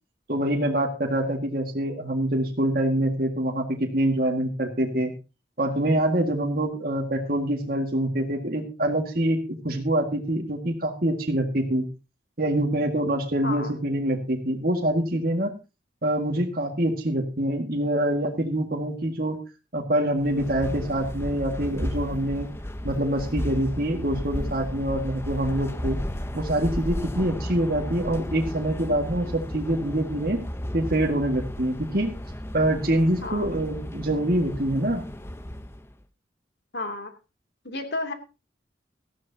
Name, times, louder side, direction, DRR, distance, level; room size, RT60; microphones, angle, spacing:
voice 1, 0.3-5.1 5.6-11.8 12.4-15.5 16.0-19.4 19.7-22.5 22.8-26.0 26.3-30.4 30.7-32.1 32.5-35.0, right 1 dB, 55° right, 1 dB, 1.9 m, -25 dB
sound 1, 20.2-35.9, equal, 15° left, 0.8 m, -34 dB
voice 2, 36.7-37.1 37.6-38.1, left 2 dB, 75° left, 6 dB, 2.7 m, -31 dB
18.0 x 14.0 x 2.8 m, 0.29 s
head